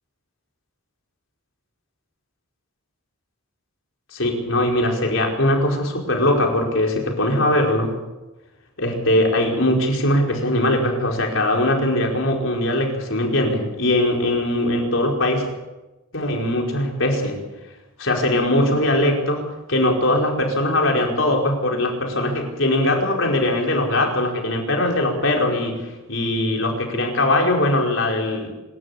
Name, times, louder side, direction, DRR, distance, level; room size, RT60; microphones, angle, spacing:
voice 1, 4.1-7.9 8.8-15.5 16.1-17.4 18.0-28.5, left 1 dB, 65° left, 1 dB, 5.0 m, -21 dB
26.0 x 13.0 x 8.7 m, 1.1 s
head